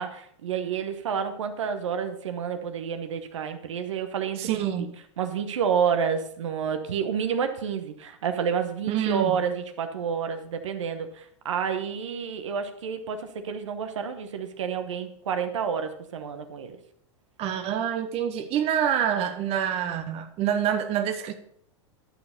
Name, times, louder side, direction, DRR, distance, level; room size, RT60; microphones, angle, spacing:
voice 1, 0.0-4.9 5.2-16.8, right 7 dB, 75° right, 8 dB, 1.1 m, -29 dB
voice 2, 4.4-4.9 8.9-9.4 17.4-21.3, right 9 dB, 40° right, 8 dB, 0.9 m, -26 dB
11.5 x 4.9 x 5.2 m, 0.68 s
hypercardioid pair, 100°, 16 cm